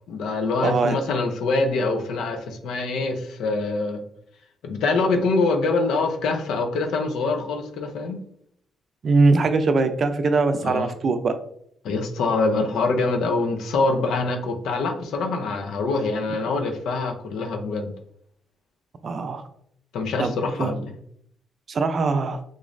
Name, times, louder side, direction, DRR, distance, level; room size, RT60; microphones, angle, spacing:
voice 1, 0.1-4.0 4.6-8.2 10.6-10.9 11.8-17.9 19.9-20.9, left 3 dB, 80° left, 5 dB, 0.6 m, -24 dB
voice 2, 0.6-1.0 9.0-11.3 19.0-19.4 20.2-20.3 20.6-20.7 21.7-22.4, right 3 dB, 50° right, 9 dB, 0.4 m, -21 dB
3.8 x 3.0 x 2.5 m, 0.67 s
cardioid pair, 90°, 0 cm